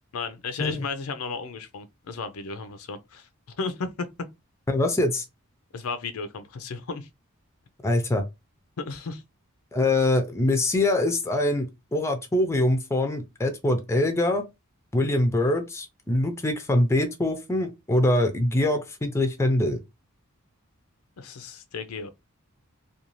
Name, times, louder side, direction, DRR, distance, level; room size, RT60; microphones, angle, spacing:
voice 1, 0.1-4.1 5.7-7.1 8.8-9.2 21.2-22.1, left 4 dB, 80° left, 0.5 m, -34 dB
voice 2, 4.7-5.2 7.8-8.2 9.7-14.5 14.9-19.8, left 1 dB, 15° left, 0.5 m, -24 dB
2.6 x 2.3 x 3.0 m
head